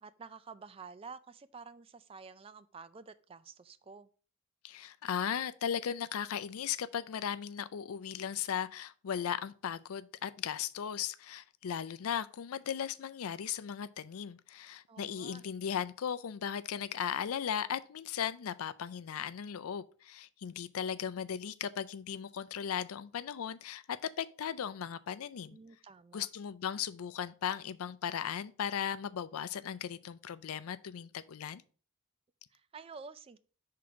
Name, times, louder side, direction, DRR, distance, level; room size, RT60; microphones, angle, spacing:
voice 1, 0.0-4.1 14.9-15.5 25.4-26.3 32.5-33.4, right 5 dB, 25° right, 0.3 m, -50 dB
voice 2, 4.6-25.6 26.1-31.6, left 8 dB, 80° left, 0.4 m, -37 dB
6.0 x 3.7 x 4.6 m
head